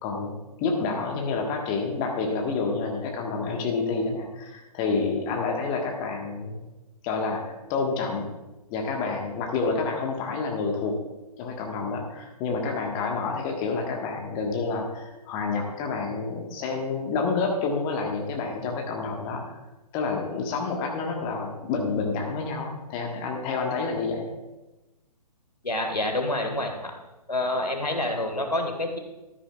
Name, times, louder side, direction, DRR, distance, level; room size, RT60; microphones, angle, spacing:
voice 1, 0.0-0.3 0.6-6.6 7.0-8.3 8.7-11.0 11.4-19.4 19.9-24.2, left 4 dB, 25° left, 1 dB, 1.4 m, -28 dB
voice 2, 25.6-26.9 27.3-29.0, left 1 dB, 85° left, 4 dB, 1.6 m, -27 dB
13.0 x 9.6 x 2.3 m, 1.1 s
figure-of-eight pair, 125°, 20 cm